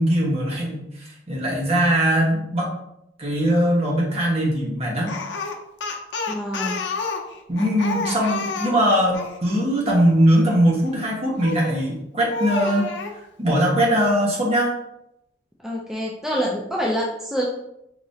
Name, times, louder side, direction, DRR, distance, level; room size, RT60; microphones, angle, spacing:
voice 1, 0.0-2.7 3.2-5.1 7.5-12.9 13.4-14.7, equal, 35° right, -3 dB, 1.2 m, -21 dB
Speech, 5.1-9.4 11.4-11.8 12.3-13.2, left 3 dB, 90° left, 0.6 m, -29 dB
voice 2, 6.3-6.8 15.6-17.5, equal, 5° right, -4 dB, 0.5 m, -26 dB
4.8 x 3.0 x 2.7 m, 0.81 s
head